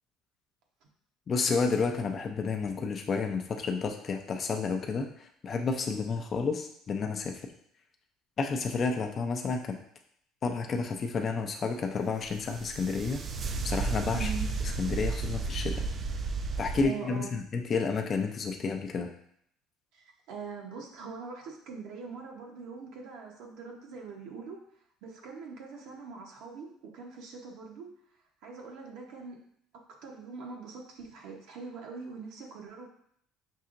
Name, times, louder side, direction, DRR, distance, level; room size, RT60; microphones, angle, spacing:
voice 1, 1.3-7.4 8.4-9.8 10.4-13.2 13.6-14.3 14.8-15.8 16.6-19.1, left 4 dB, 40° left, 3 dB, 0.5 m, -30 dB
sound 1, 12.3-16.8, right 4 dB, 40° right, 0.3 m, -33 dB
voice 2, 14.1-14.5 16.8-17.4 19.9-24.6 25.0-26.7 26.9-27.9 28.4-29.4 30.0-32.9, right 5 dB, 75° right, 0 dB, 0.8 m, -42 dB
5.4 x 2.8 x 2.5 m, 0.68 s
supercardioid pair, 95°, 0 cm